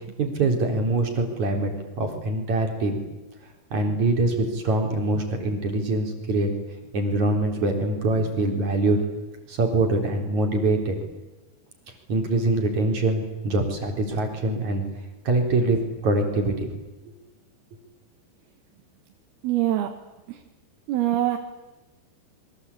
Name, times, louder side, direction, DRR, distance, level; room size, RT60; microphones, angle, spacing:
voice 1, 0.2-1.7 2.0-3.0 3.7-6.5 6.9-9.0 9.5-11.0 12.1-14.8 15.2-16.7, right 2 dB, 45° right, 3 dB, 4.9 m, -24 dB
voice 2, 19.4-19.9 20.3-20.4 20.9-21.4, right 13 dB, 75° right, 5 dB, 3.3 m, -23 dB
27.0 x 23.5 x 8.6 m, 1.1 s
omnidirectional pair, 4.8 m